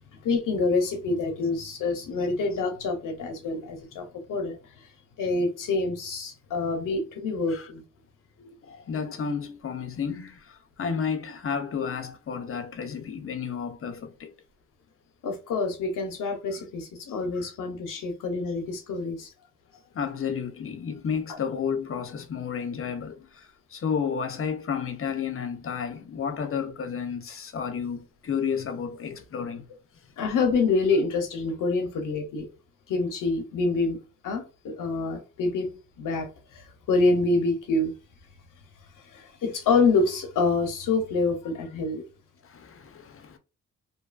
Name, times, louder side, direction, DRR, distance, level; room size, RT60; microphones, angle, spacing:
voice 1, 0.2-4.9 5.2-7.8 15.2-19.3 30.2-32.5 32.9-34.0 34.2-37.9 39.0-42.0, left 3 dB, 90° left, 0.7 m, -27 dB
voice 2, 8.4-14.3 18.0-18.1 19.9-29.6 42.4-43.4, left 6 dB, 45° left, 0.6 m, -32 dB
2.6 x 2.3 x 2.4 m
cardioid pair, 105°, 31 cm